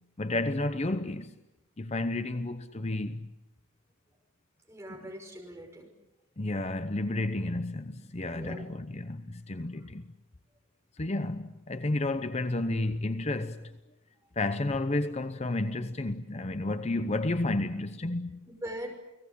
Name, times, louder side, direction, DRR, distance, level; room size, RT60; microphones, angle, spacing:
voice 1, 0.2-1.3 1.8-3.3 4.9-5.0 6.4-10.1 11.0-13.7 14.4-18.5, left 2 dB, 35° left, 0.8 m, -31 dB
voice 2, 4.7-5.9 8.3-8.7 9.8-9.9 18.5-18.9, equal, 15° right, 6.1 m, -41 dB
30.0 x 19.5 x 8.4 m
head